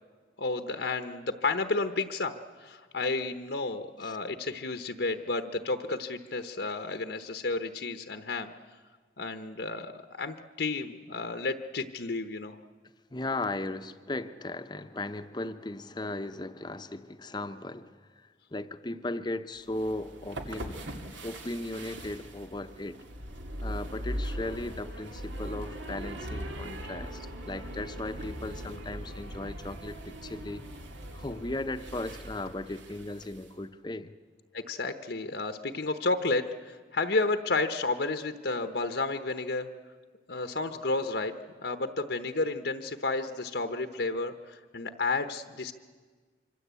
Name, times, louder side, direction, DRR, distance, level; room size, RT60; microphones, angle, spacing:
voice 1, 0.4-8.5 9.2-12.6 34.5-39.7 40.3-41.3 41.6-45.7, left 3 dB, 65° left, 8 dB, 1.0 m, -31 dB
voice 2, 13.1-23.0 23.6-30.6 31.1-34.1, left 2 dB, 25° left, 10 dB, 0.8 m, -37 dB
sound 1, 19.6-33.5, equal, 80° right, 2.5 m, -40 dB
25.5 x 25.0 x 8.3 m, 1.5 s
head